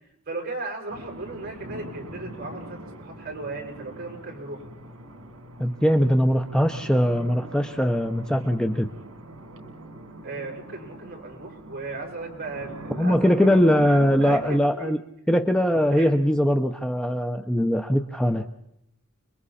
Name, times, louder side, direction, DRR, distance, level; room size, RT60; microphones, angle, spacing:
voice 1, 0.3-4.6 10.2-15.0 16.0-16.1, right 3 dB, 45° right, 0 dB, 6.8 m, -36 dB
sound 1, 0.9-14.6, right 1 dB, 75° right, 3.0 m, -42 dB
voice 2, 5.6-8.9 13.0-15.0 15.3-18.5, equal, 5° left, 6 dB, 0.8 m, -21 dB
29.5 x 22.5 x 4.3 m, 0.78 s
head